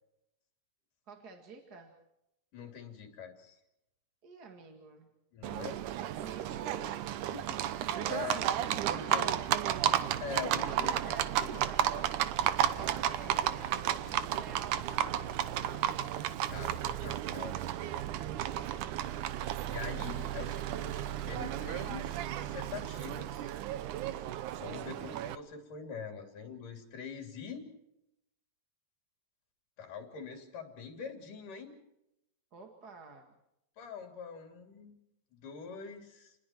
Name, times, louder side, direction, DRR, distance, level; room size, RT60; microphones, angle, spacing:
voice 1, 1.1-1.9 4.2-5.1 6.0-8.1 8.5-10.2 10.5-16.1 19.8-20.0 20.3-20.5 24.8-25.0 32.5-33.3, right 4 dB, 35° right, 3 dB, 2.0 m, -50 dB
voice 2, 2.5-3.6 5.3-5.8 8.1-8.4 8.9-9.3 10.2-11.6 16.5-18.0 19.7-23.5 24.6-27.7 29.8-31.8 33.8-35.0 35.3-36.4, left 6 dB, 70° left, 4 dB, 4.7 m, -44 dB
Livestock farm animals working animals, 5.4-25.3, right 11 dB, 70° right, 2.3 m, -33 dB
30.0 x 20.5 x 4.5 m, 0.85 s
omnidirectional pair, 3.9 m